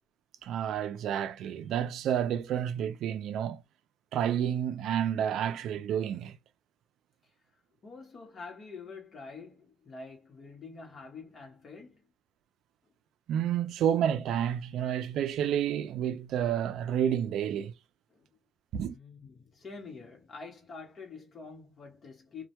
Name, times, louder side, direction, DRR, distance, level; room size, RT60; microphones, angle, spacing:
voice 1, 0.4-3.6 4.1-6.4 13.3-17.7 18.7-19.0, right 9 dB, 80° right, 0.3 m, -30 dB
voice 2, 7.8-12.0 18.1-18.3 18.9-22.5, left 4 dB, 45° left, 0.9 m, -46 dB
2.2 x 2.1 x 2.8 m
cardioid pair, 90°, 0 cm